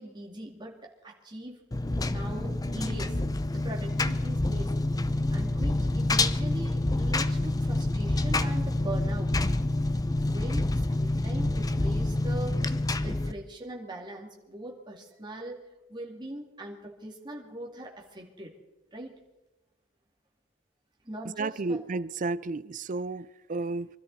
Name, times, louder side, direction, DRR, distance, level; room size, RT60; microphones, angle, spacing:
voice 1, 0.0-1.6 2.0-3.2 3.5-4.8 5.3-9.3 10.2-12.6 13.0-18.5 18.9-19.2 21.0-21.9, right 1 dB, 25° right, 2.5 m, -41 dB
Engine, 1.7-13.3, left 2 dB, 20° left, 0.6 m, -27 dB
voice 2, 21.4-23.9, right 3 dB, 40° right, 0.5 m, -32 dB
24.0 x 13.0 x 4.1 m
head